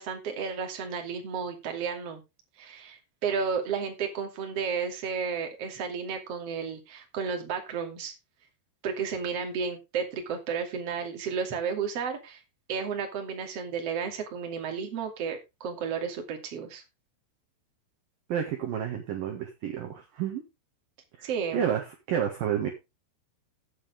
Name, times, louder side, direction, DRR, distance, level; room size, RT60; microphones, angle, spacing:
voice 1, 0.0-2.2 2.6-8.1 8.8-12.4 12.7-16.8 21.2-21.6, right 6 dB, 40° right, 3 dB, 2.8 m, -32 dB
voice 2, 18.3-20.4 21.2-22.7, right 9 dB, 60° right, 3 dB, 2.8 m, -30 dB
16.0 x 7.5 x 3.4 m, 0.25 s
omnidirectional pair, 5.6 m